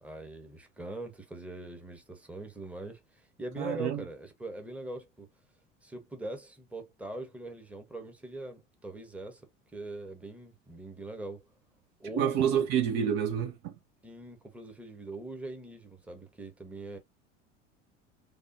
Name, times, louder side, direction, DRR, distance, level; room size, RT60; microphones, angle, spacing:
voice 1, 0.0-5.3 5.8-11.5 12.0-12.7 14.0-17.0, right 2 dB, 5° right, 0.9 m, -42 dB
voice 2, 3.6-4.0 12.2-13.7, right 8 dB, 45° right, 0.7 m, -28 dB
3.5 x 2.3 x 2.6 m
figure-of-eight pair, 75°, 37 cm